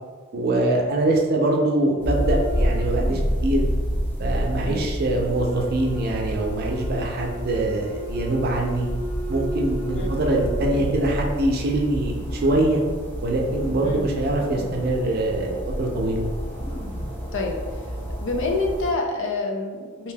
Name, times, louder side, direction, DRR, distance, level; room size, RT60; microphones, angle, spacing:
voice 1, 0.3-3.6 4.2-8.9 9.3-12.8 13.2-16.2, right 2 dB, 50° right, 0 dB, 0.5 m, -23 dB
sound 1, 2.0-18.9, equal, 10° left, 0.5 m, -29 dB
sound 2, 2.1-3.5 3.8-4.0 5.1-11.1 11.7-11.8 12.1-13.0 13.4-15.0 15.3-15.4 16.1-16.2 16.4-17.2 17.8-18.0, right 1 dB, 30° left, 0.9 m, -37 dB
voice 2, 18.2-20.1, left 3 dB, 60° left, 2 dB, 0.4 m, -27 dB
3.3 x 2.7 x 2.2 m, 1.4 s
head